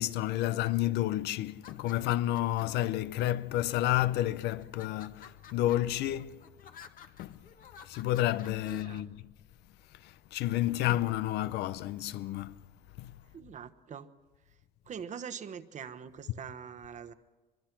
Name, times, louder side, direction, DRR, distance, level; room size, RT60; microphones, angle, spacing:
voice 1, 0.0-6.4 7.2-7.4 7.8-9.3 10.0-12.6 13.0-13.2, left 14 dB, 85° left, 0.7 m, -30 dB
sound 1, 1.5-2.9 3.6-4.1 4.6-9.0, left 7 dB, 55° left, 1.4 m, -53 dB
voice 2, 8.7-9.0 13.3-14.1 14.9-17.1, right 7 dB, 45° right, 1.2 m, -43 dB
23.5 x 22.5 x 6.0 m
cardioid pair, 110°, 17 cm